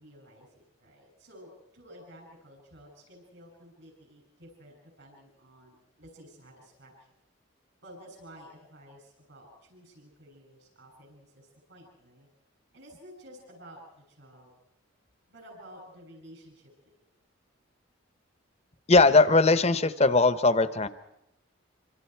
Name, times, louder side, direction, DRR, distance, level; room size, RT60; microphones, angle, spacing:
voice 1, 0.0-7.1 7.8-12.3 12.7-14.5 15.3-17.0, equal, 70° right, 1 dB, 7.2 m, -52 dB
voice 2, 18.9-20.9, left 3 dB, 30° left, 13 dB, 0.9 m, -20 dB
26.0 x 25.5 x 4.6 m, 0.84 s
head